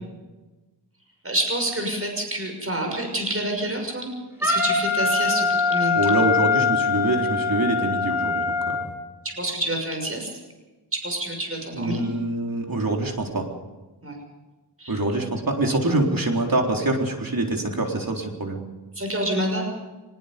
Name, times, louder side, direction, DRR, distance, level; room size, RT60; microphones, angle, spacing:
voice 1, 1.2-4.1 4.4-6.1 9.2-10.3 10.9-12.1 14.0-14.2 14.8-15.0 18.9-19.7, right 1 dB, 30° right, 2 dB, 6.3 m, -28 dB
Wind instrument woodwind instrument, 4.4-8.9, left 5 dB, 5° right, 7.0 m, -23 dB
voice 2, 6.0-8.8 11.8-13.5 14.9-18.6, right 2 dB, 55° right, 1 dB, 4.0 m, -25 dB
23.5 x 21.0 x 5.3 m, 1.2 s
wide cardioid pair, 70°, 42 cm